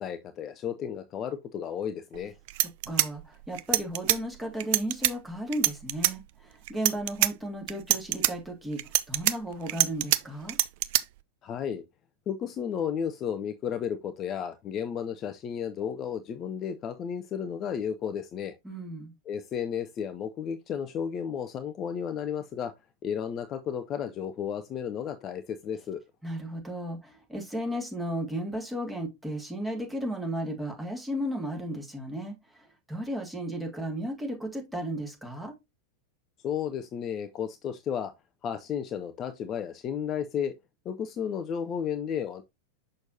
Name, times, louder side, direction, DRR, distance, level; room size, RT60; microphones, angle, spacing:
voice 1, 0.0-2.3 11.4-11.8 12.3-18.5 19.3-22.7 23.0-26.0 36.4-38.1 38.4-40.5 40.9-42.4, left 8 dB, 30° left, 0.6 m, -33 dB
sound 1, 2.1-2.2 2.5-4.2 4.6-5.1 5.5-6.1 6.7-7.3 7.7-8.3 8.8-10.2 10.5-11.0, right 16 dB, 50° right, 0.4 m, -24 dB
voice 2, 2.6-8.8 9.1-10.6 18.6-19.1 26.2-32.3 32.9-35.5, right 1 dB, 5° right, 2.0 m, -34 dB
6.4 x 6.2 x 2.7 m
figure-of-eight pair, 90°, 0 cm